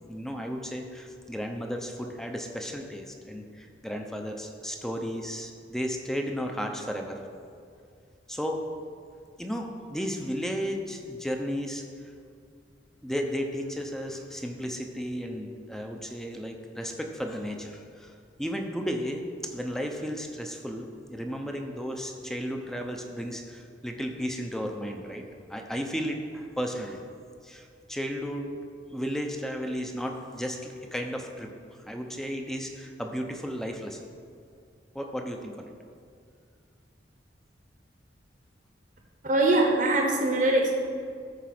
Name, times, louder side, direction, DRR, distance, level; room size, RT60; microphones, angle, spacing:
voice 1, 0.1-7.2 8.3-8.6 9.4-12.1 13.0-25.2 25.5-27.0 27.4-28.6 28.9-31.5 31.9-34.0 34.9-35.7, equal, ahead, 3 dB, 0.7 m, -34 dB
voice 2, 39.2-40.7, right 2 dB, 45° right, 1 dB, 1.0 m, -22 dB
13.5 x 4.6 x 6.0 m, 2.3 s
head